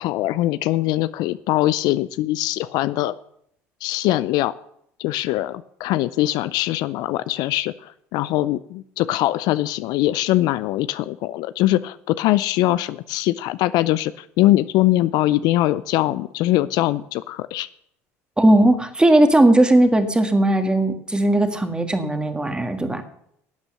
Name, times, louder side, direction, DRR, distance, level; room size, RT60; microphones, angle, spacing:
voice 1, 0.0-3.1 3.8-4.5 5.0-17.7, left 16 dB, 60° left, 16 dB, 0.4 m, -22 dB
voice 2, 18.4-23.0, right 1 dB, 10° right, 7 dB, 1.8 m, -17 dB
12.0 x 8.1 x 6.8 m, 0.71 s
hypercardioid pair, 70°, 8 cm